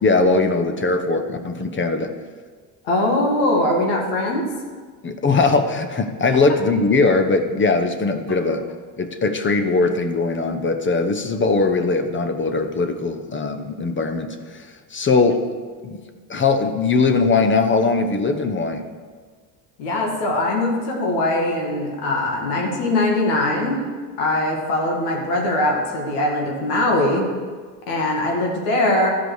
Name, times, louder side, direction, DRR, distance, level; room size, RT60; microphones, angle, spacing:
voice 1, 0.0-2.1 5.0-8.7 9.0-15.4 15.8-16.0 16.3-18.9, left 3 dB, 25° left, 7 dB, 0.9 m, -20 dB
voice 2, 2.8-4.5 19.8-23.8 24.2-27.3 27.9-29.1, left 1 dB, 90° left, -1 dB, 2.2 m, -21 dB
13.0 x 5.1 x 6.3 m, 1.5 s
supercardioid pair, 100°, 44 cm